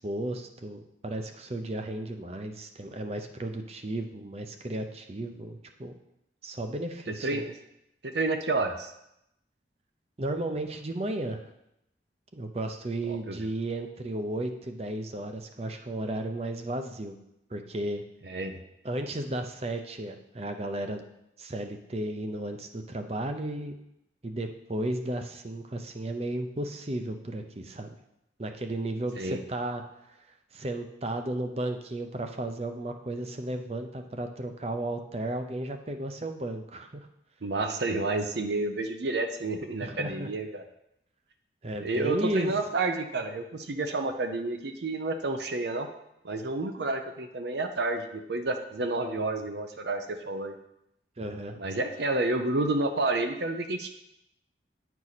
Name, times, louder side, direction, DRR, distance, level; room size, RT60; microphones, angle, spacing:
voice 1, 0.0-5.9 6.4-7.5 10.2-11.5 12.3-17.2 17.5-18.0 18.8-21.0 21.4-23.7 24.2-27.9 28.4-30.2 30.5-37.1 39.8-40.3 41.6-42.5 51.2-51.6, right 1 dB, 35° right, 6 dB, 0.6 m, -34 dB
voice 2, 7.2-7.5 8.0-8.9 13.3-13.4 18.3-18.6 29.2-29.4 37.4-40.6 41.8-45.9 46.2-50.5 51.6-53.9, right 2 dB, 70° right, 6 dB, 0.7 m, -30 dB
9.8 x 4.6 x 4.1 m, 0.83 s
head